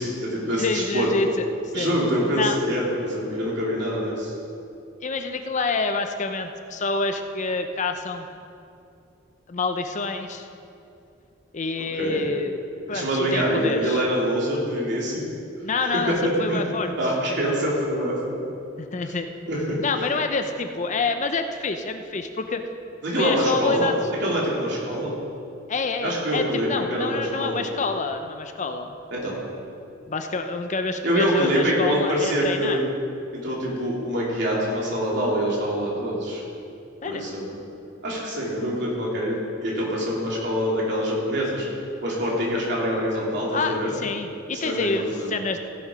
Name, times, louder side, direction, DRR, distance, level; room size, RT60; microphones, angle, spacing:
voice 1, 0.0-1.1 1.7-4.3 12.0-12.2 12.9-15.2 15.8-16.2 16.5-16.6 17.0-18.4 19.5-19.8 23.0-25.2 26.0-27.6 29.1-29.4 31.0-32.8 33.3-36.4 37.0-37.5 38.0-39.4 39.6-41.7 42.0-43.9 44.6-45.4, equal, 65° right, -4 dB, 3.1 m, -25 dB
voice 2, 0.6-1.4 1.7-1.9 2.3-2.6 5.0-8.3 9.5-10.5 11.5-12.5 12.9-14.0 15.6-16.9 18.8-19.3 19.8-22.6 23.1-23.9 25.7-28.9 30.1-32.9 37.0-37.2 43.5-45.6, left 3 dB, 40° left, 7 dB, 0.6 m, -27 dB
16.0 x 7.0 x 5.1 m, 2.5 s
head